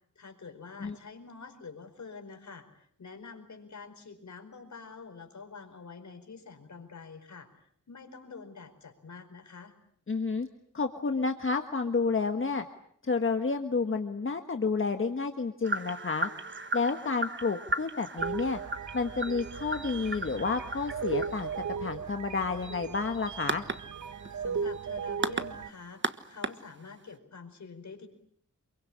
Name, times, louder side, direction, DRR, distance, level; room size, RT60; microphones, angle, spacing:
voice 1, 0.1-9.7 24.4-28.1, left 4 dB, 65° left, 5 dB, 5.0 m, -47 dB
voice 2, 10.1-10.5 10.7-12.6 13.0-16.3 16.7-18.6 18.9-21.5 21.8-23.6, left 4 dB, 40° left, 6 dB, 1.6 m, -30 dB
sound 1, 15.6-27.1, right 3 dB, 35° right, 1.4 m, -37 dB
sound 2, 18.2-25.7, right 6 dB, 65° right, 1.6 m, -37 dB
28.0 x 23.0 x 8.8 m, 0.68 s
wide cardioid pair, 130°, 31 cm